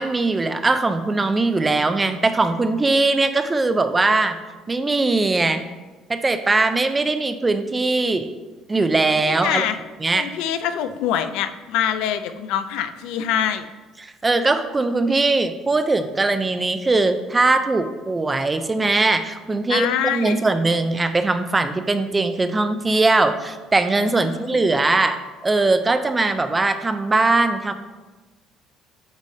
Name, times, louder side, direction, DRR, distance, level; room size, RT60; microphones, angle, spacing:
voice 1, 0.0-4.4 4.7-5.6 6.1-8.3 8.7-9.6 10.0-10.3 14.2-27.7, right 3 dB, 15° right, 10 dB, 0.4 m, -20 dB
voice 2, 9.2-9.8 10.1-13.7 19.7-20.4 24.2-24.6, left 9 dB, 80° left, 10 dB, 0.4 m, -25 dB
8.2 x 3.2 x 5.4 m, 1.2 s
cardioid pair, 175°, 0 cm